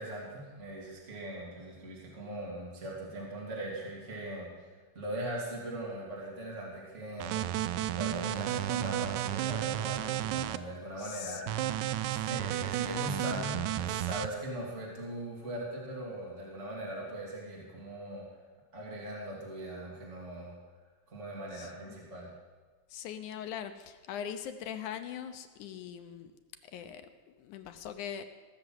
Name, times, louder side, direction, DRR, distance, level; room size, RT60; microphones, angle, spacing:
voice 1, 0.0-4.5 4.9-7.4 7.9-11.5 12.1-18.3 18.7-20.5 21.1-22.3, right 1 dB, 20° right, -4 dB, 3.1 m, -40 dB
sound 1, 7.2-10.6 11.5-14.3, right 13 dB, 80° right, 1.8 m, -32 dB
voice 2, 11.0-11.4 21.5-22.0 22.9-26.3 26.6-28.2, left 9 dB, 75° left, 8 dB, 2.1 m, -41 dB
18.5 x 6.7 x 7.8 m, 1.4 s
omnidirectional pair, 3.8 m